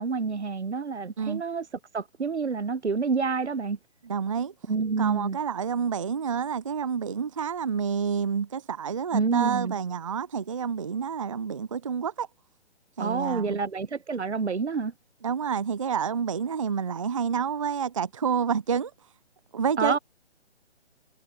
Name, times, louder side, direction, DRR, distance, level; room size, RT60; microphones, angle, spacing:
voice 1, 0.0-1.7 1.9-3.8 4.7-5.4 9.1-9.7 13.0-14.9 19.8-20.0, right 5 dB, 70° right, 1.0 m, -28 dB
voice 2, 4.0-4.5 5.0-12.3 13.0-13.6 15.2-18.9 19.5-20.0, right 7 dB, 30° right, 0.5 m, -28 dB
figure-of-eight pair, 140°, 35 cm